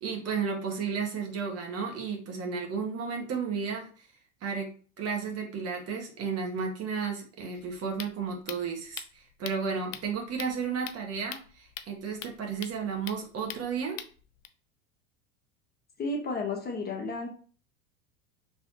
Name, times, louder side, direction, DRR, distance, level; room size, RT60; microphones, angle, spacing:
voice 1, 0.0-3.9 4.4-4.7 5.0-14.0, right 5 dB, 40° right, 2 dB, 1.4 m, -33 dB
sound 1, 7.6-14.5, left 11 dB, 85° left, 0.5 m, -44 dB
voice 2, 16.0-17.3, left 3 dB, 25° left, 1 dB, 1.1 m, -32 dB
4.7 x 3.2 x 2.9 m, 0.40 s
hypercardioid pair, 95°, 37 cm